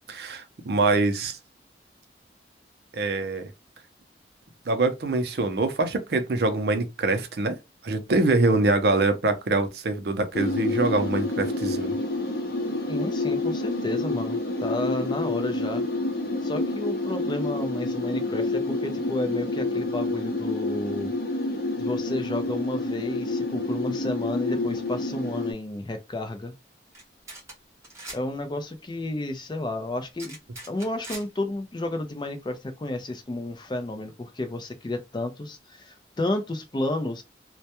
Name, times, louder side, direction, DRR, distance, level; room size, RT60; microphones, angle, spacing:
voice 1, 0.1-1.4 2.9-3.5 4.7-7.6 7.8-12.0, right 2 dB, 60° right, 0.5 m, -24 dB
sound 1, 10.3-25.5, left 2 dB, 55° left, 0.7 m, -28 dB
voice 2, 12.9-15.8 16.4-21.1 21.8-26.5 28.1-30.4 30.7-37.2, left 2 dB, 25° left, 0.4 m, -31 dB
sound 2, 26.9-27.0 27.3-27.5 27.8-28.2 30.2-31.2, right 2 dB, 15° right, 1.0 m, -40 dB
2.2 x 2.1 x 2.8 m
head